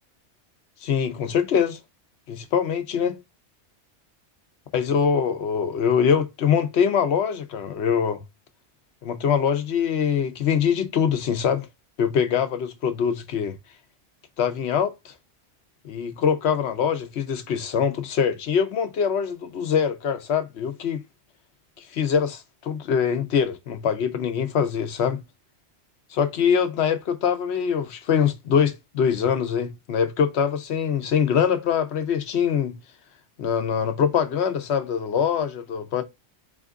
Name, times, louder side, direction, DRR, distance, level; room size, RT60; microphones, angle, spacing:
voice 1, 0.8-1.8 2.3-3.2 4.7-8.2 9.0-11.7 12.0-13.6 14.4-15.1 15.8-21.0 21.9-25.2 26.1-32.7 33.4-36.0, left 7 dB, 70° left, 1.0 m, -23 dB
4.3 x 2.5 x 3.5 m
omnidirectional pair, 1.2 m